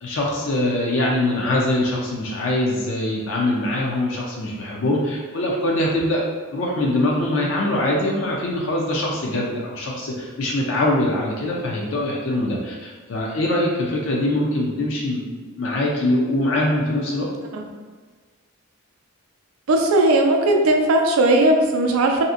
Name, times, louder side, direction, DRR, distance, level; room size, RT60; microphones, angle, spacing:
voice 1, 0.0-6.3 6.5-17.3, left 1 dB, 65° left, -2 dB, 0.4 m, -23 dB
voice 2, 19.7-22.2, right 1 dB, 90° right, 2 dB, 0.4 m, -17 dB
2.7 x 2.5 x 2.4 m, 1.4 s
head